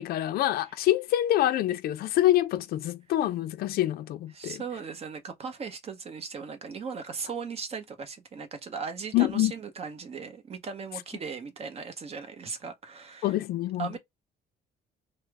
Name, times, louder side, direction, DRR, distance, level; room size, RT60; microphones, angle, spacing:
voice 1, 0.0-4.6 9.1-9.5 13.2-14.0, left 14 dB, 65° left, 0.4 m, -26 dB
voice 2, 4.3-13.3 13.8-14.0, right 5 dB, 35° right, 0.8 m, -38 dB
3.0 x 2.1 x 3.4 m
cardioid pair, 110°, 17 cm